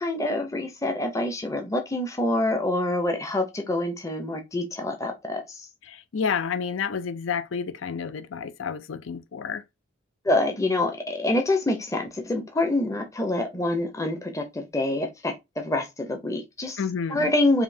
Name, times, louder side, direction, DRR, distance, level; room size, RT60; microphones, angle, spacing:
voice 1, 0.0-5.7 10.2-16.8 17.1-17.6, left 2 dB, 15° left, 0.6 m, -26 dB
voice 2, 5.8-9.6 16.8-17.3, left 6 dB, 75° left, 0.5 m, -30 dB
5.0 x 2.7 x 2.7 m
head